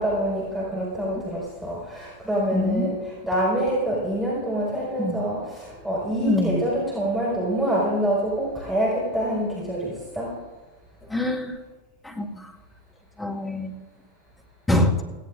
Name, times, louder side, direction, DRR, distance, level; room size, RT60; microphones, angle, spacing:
voice 1, 0.0-10.4, right 1 dB, 5° right, -7 dB, 5.0 m, -26 dB
voice 2, 2.5-2.9 5.0-5.2 6.2-6.6 11.1-11.6 12.0-12.3 13.2-13.7 14.7-14.9, left 2 dB, 10° left, 1 dB, 1.8 m, -24 dB
17.5 x 17.0 x 2.6 m, 1.2 s
figure-of-eight pair, 90°, 0 cm